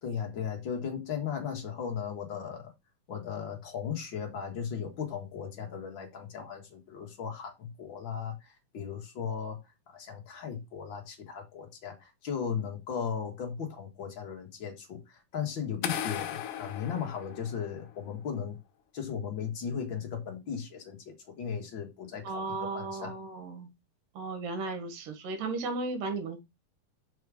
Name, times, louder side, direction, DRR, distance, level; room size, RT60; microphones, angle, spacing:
voice 1, 0.0-2.7 3.1-9.6 9.9-18.6 18.9-23.2, left 7 dB, 45° left, 1.7 m, -37 dB
sound 1, 15.8-17.9, left 10 dB, 75° left, 2.2 m, -36 dB
voice 2, 22.2-23.7 24.1-26.4, right 3 dB, 75° right, 3.1 m, -35 dB
6.2 x 5.0 x 4.8 m
omnidirectional pair, 4.0 m